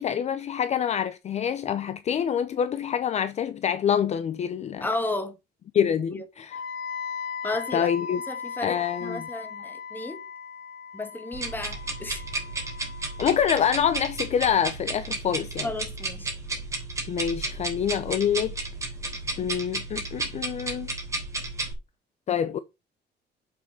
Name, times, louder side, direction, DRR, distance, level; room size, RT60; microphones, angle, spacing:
voice 1, 0.0-4.9 5.7-6.6 7.7-8.2 8.6-9.3 13.2-15.7 17.1-18.5 19.4-20.9 22.3-22.6, left 8 dB, 40° left, 0.5 m, -26 dB
voice 2, 4.8-5.4 6.1-6.2 7.4-7.9 8.3-10.2 10.9-12.2 15.6-16.3, left 2 dB, 10° left, 1.4 m, -33 dB
Wind instrument woodwind instrument, 6.5-14.4, left 6 dB, 90° left, 1.4 m, -38 dB
sound 1, 11.3-21.7, right 2 dB, 15° right, 3.3 m, -33 dB
7.0 x 6.2 x 5.5 m
cardioid pair, 175°, 18 cm